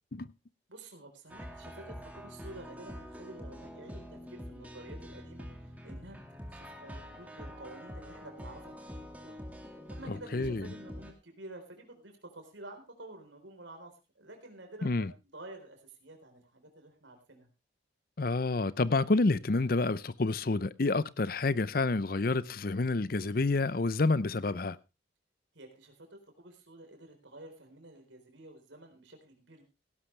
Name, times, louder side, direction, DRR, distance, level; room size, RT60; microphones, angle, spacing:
voice 1, 0.7-6.2 6.5-9.0 9.2-9.4 9.9-17.5 25.5-29.6, right 2 dB, 75° right, 4.1 m, -50 dB
sound 1, 1.3-11.1, equal, 10° right, 2.1 m, -45 dB
voice 2, 10.3-10.6 14.8-15.1 18.2-24.8, left 3 dB, 50° left, 0.6 m, -28 dB
17.5 x 12.0 x 3.3 m
head